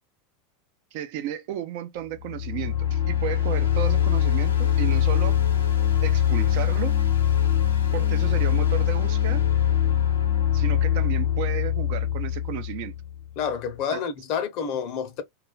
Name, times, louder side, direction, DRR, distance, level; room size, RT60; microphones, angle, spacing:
voice 1, 0.9-5.4 6.0-7.0 7.9-9.5 10.5-13.0 13.9-14.0, right 11 dB, 60° right, 0.5 m, -33 dB
sound 1, 2.2-13.3, left 10 dB, 90° left, 0.8 m, -23 dB
voice 2, 13.4-15.2, left 7 dB, 55° left, 0.7 m, -29 dB
2.4 x 2.2 x 2.3 m
hypercardioid pair, 90°, 0 cm